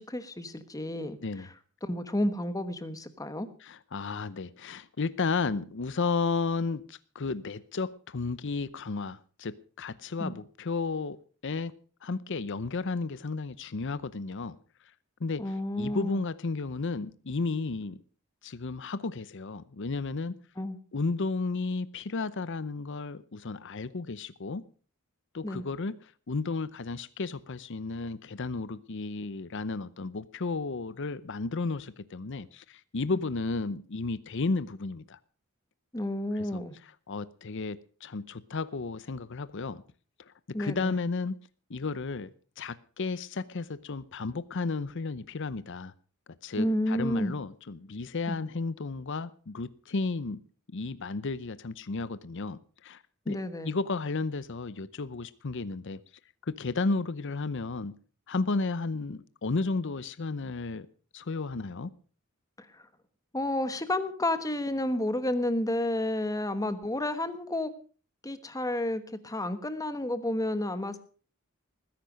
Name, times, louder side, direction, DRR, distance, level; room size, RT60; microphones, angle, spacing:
voice 1, 0.0-1.5 1.8-3.5 10.2-10.3 15.4-16.2 20.6-20.8 25.4-25.7 35.9-36.8 40.5-40.9 46.6-47.3 48.3-48.4 53.2-53.7 62.6-62.8 63.3-67.7 68.2-71.0, left 1 dB, 15° left, 11 dB, 1.2 m, -31 dB
voice 2, 3.6-11.2 11.4-11.7 12.0-14.6 15.2-15.4 15.8-18.0 18.4-20.3 20.9-24.6 25.3-35.2 36.3-36.6 37.1-39.8 40.6-41.3 41.7-42.3 42.6-45.9 46.4-50.4 50.7-53.4 53.6-56.0 56.4-57.9 58.3-60.9 61.1-61.9, left 3 dB, 60° left, 16 dB, 0.7 m, -33 dB
20.0 x 10.5 x 5.1 m, 0.40 s
head